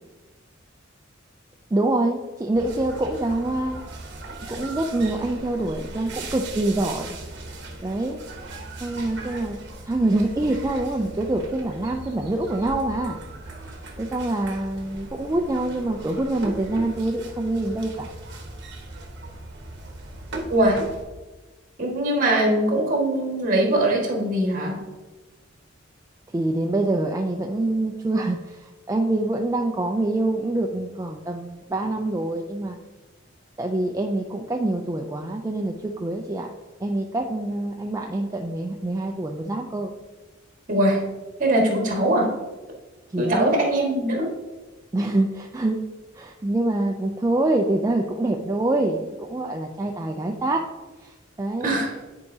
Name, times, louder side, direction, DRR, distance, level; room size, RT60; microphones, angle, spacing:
voice 1, 1.7-3.8 4.5-7.2 7.8-8.2 8.8-9.6 9.8-13.2 13.7-18.1 26.3-32.8 33.6-36.5 36.8-39.9 43.1-43.6 44.9-45.8 46.1-50.7 51.0-51.8, right 2 dB, 15° right, 1 dB, 0.3 m, -25 dB
sound 1, 2.5-21.0, right 2 dB, 60° right, 1.1 m, -38 dB
voice 2, 20.5-20.8 21.8-24.8 40.7-41.1 41.4-42.3 43.2-44.3 51.6-51.9, right 1 dB, 45° right, -1 dB, 1.6 m, -21 dB
9.6 x 4.6 x 2.7 m, 1.2 s
head